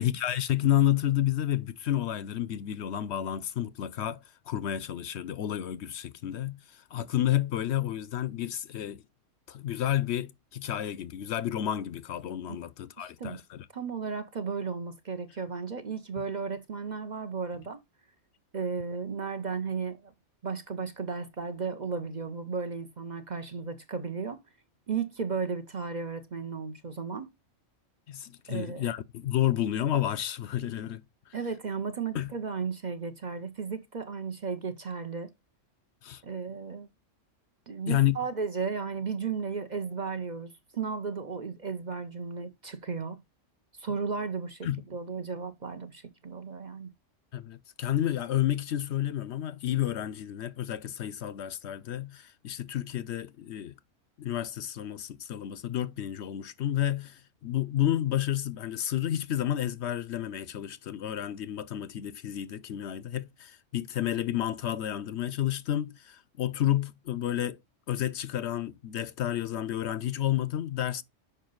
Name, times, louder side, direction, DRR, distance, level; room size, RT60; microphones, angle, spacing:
voice 1, 0.0-9.0 9.5-13.7 28.1-31.0 32.1-32.3 36.0-36.2 37.9-38.2 44.6-44.8 47.3-53.7 54.2-67.6 67.9-71.0, left 12 dB, 70° left, 0.8 m, -30 dB
voice 2, 13.0-13.4 13.7-17.8 18.5-20.1 20.4-24.4 24.9-27.3 28.5-28.9 31.3-35.3 36.2-36.9 37.7-43.2 43.8-46.9, right 5 dB, 40° right, 0.8 m, -34 dB
6.7 x 5.2 x 3.8 m
omnidirectional pair, 1.3 m